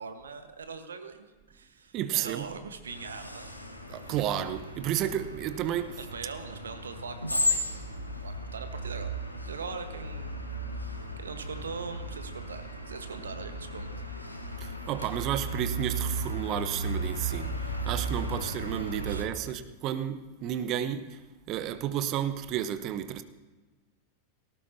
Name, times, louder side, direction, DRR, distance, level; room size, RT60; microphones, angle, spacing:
voice 1, 0.0-3.5 6.0-7.7 8.2-9.2 9.4-10.4 10.7-13.9 19.1-19.5, right 5 dB, 70° right, 1.2 m, -41 dB
voice 2, 1.9-2.5 3.9-6.0 14.6-21.2 21.5-23.2, right 10 dB, 35° right, 0.8 m, -32 dB
sound 1, 2.9-19.2, right 1 dB, 85° left, 1.5 m, -35 dB
19.0 x 18.0 x 2.8 m
figure-of-eight pair, 90°, 0 cm